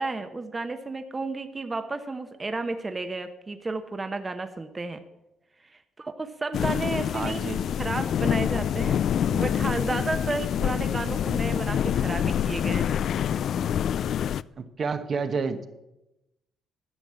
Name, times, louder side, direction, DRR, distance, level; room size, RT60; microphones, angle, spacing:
voice 1, 0.0-5.0 5.7-9.0 9.3-13.0, right 3 dB, 25° right, 8 dB, 0.9 m, -32 dB
sound 1, 6.5-14.4, left 9 dB, 65° left, 0.3 m, -26 dB
voice 2, 7.1-7.7 14.6-15.7, right 5 dB, 50° right, 8 dB, 1.0 m, -30 dB
11.5 x 7.1 x 7.5 m, 0.94 s
cardioid pair, 90°, 0 cm